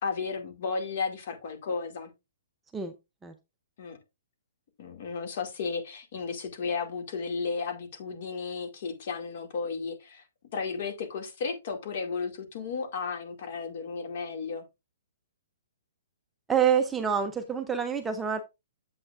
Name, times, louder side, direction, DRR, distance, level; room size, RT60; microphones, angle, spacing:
voice 1, 0.0-2.1 3.8-4.0 4.8-10.2 10.5-14.6, left 5 dB, 45° left, 2.1 m, -34 dB
voice 2, 16.5-18.4, right 7 dB, 5° right, 0.5 m, -26 dB
8.7 x 7.7 x 2.4 m
hypercardioid pair, 165°, 0 cm